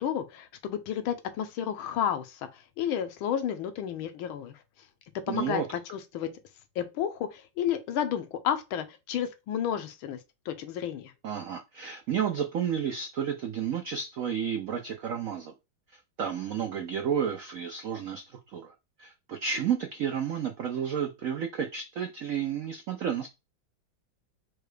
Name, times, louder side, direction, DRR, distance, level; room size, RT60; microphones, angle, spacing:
voice 1, 0.0-2.5 2.8-4.6 5.3-6.3 6.8-10.2 10.5-11.1, left 9 dB, 80° left, 1.5 m, -31 dB
voice 2, 5.3-5.7 11.2-15.5 16.2-18.7 19.0-23.3, right 8 dB, 80° right, 0.7 m, -31 dB
4.7 x 2.3 x 4.8 m
omnidirectional pair, 2.2 m